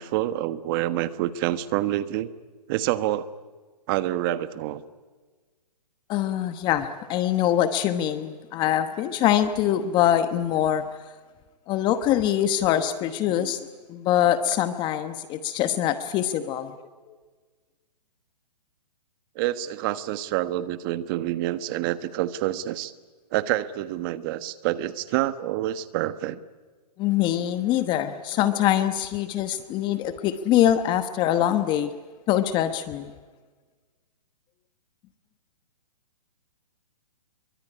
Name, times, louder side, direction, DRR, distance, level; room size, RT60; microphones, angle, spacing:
voice 1, 0.0-2.3 2.7-3.3 3.9-4.8 19.3-22.9 23.3-26.4, right 14 dB, 35° right, 13 dB, 1.3 m, -27 dB
voice 2, 6.1-10.8 11.7-16.7 27.0-31.9 32.3-33.1, left 11 dB, 20° left, 11 dB, 1.1 m, -24 dB
25.0 x 23.5 x 9.9 m, 1.4 s
hypercardioid pair, 145°, 21 cm